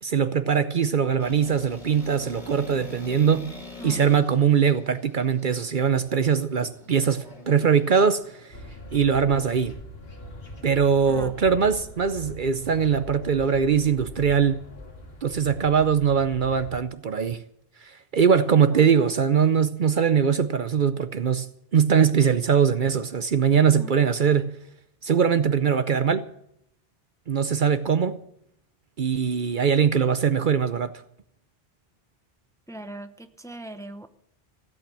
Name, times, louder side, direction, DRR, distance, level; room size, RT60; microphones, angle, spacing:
voice 1, 0.0-3.5 3.8-8.6 8.9-9.8 10.6-14.6 15.2-17.4 18.1-24.5 25.0-26.2 27.3-28.2 29.0-30.9, right 7 dB, 55° right, 0.8 m, -21 dB
sound 1, 1.2-8.5, left 3 dB, 45° left, 3.1 m, -45 dB
sound 2, 8.5-16.8, left 1 dB, 75° left, 2.6 m, -42 dB
voice 2, 32.7-34.1, right 1 dB, 5° left, 0.8 m, -40 dB
16.0 x 8.8 x 8.7 m
omnidirectional pair, 1.0 m